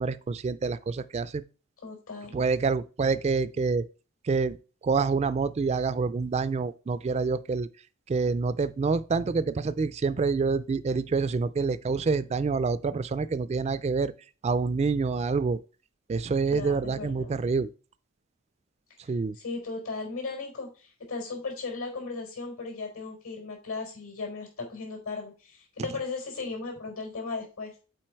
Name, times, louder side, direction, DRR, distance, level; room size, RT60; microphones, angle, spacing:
voice 1, 0.0-1.4 2.3-3.8 4.3-4.6 4.8-7.7 8.1-14.1 14.4-15.6 16.1-17.7 19.1-19.4, right 4 dB, 30° right, 0.3 m, -27 dB
voice 2, 1.8-2.4 16.5-17.3 19.3-27.7, left 4 dB, 85° left, 4.2 m, -36 dB
7.6 x 4.7 x 4.5 m
head